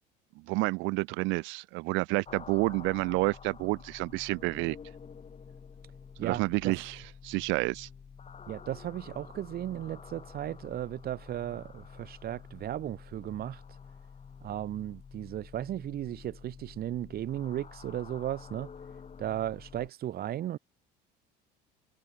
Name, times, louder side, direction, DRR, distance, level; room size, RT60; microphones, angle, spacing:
voice 1, 0.5-4.8 6.2-7.0 7.2-7.9, right 25 dB, 65° right, 0.5 m, -29 dB
sound 1, 2.3-19.9, left 6 dB, 30° left, 3.5 m, -49 dB
voice 2, 6.2-6.9 8.5-13.8 14.4-18.7 19.2-20.6, right 12 dB, 50° right, 0.9 m, -36 dB
supercardioid pair, 80°, 21 cm